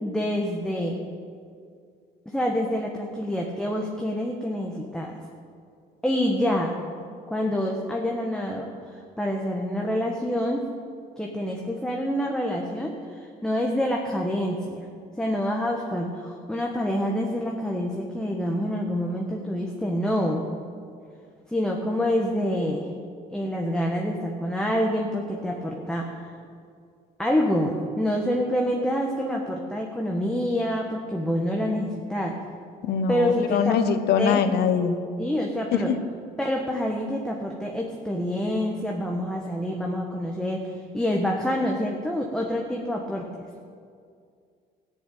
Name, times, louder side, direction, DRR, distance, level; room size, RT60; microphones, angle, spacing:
voice 1, 0.0-1.0 2.2-5.2 6.0-6.7 7.3-10.6 11.2-14.8 15.2-20.5 21.5-22.9 23.3-26.2 27.2-32.4 33.1-33.8 34.2-34.5 35.2-35.9 36.4-40.7 40.9-43.4, equal, 5° left, -1 dB, 1.4 m, -27 dB
voice 2, 32.8-35.0 35.7-35.9, left 7 dB, 75° left, 10 dB, 1.1 m, -23 dB
15.0 x 7.2 x 8.9 m, 2.2 s
cardioid pair, 110°, 17 cm